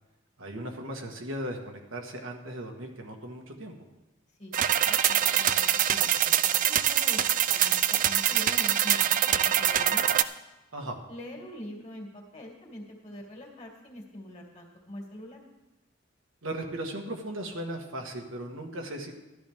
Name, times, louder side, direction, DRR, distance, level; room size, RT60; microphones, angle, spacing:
voice 1, 0.4-3.7 10.7-11.0 16.4-19.1, right 1 dB, 85° right, 2 dB, 1.5 m, -37 dB
voice 2, 4.4-10.0 11.1-15.4, left 1 dB, 35° left, 0 dB, 2.3 m, -44 dB
sound 1, 4.5-10.2, right 11 dB, 40° right, 0.4 m, -24 dB
12.5 x 12.0 x 3.6 m, 1.0 s
head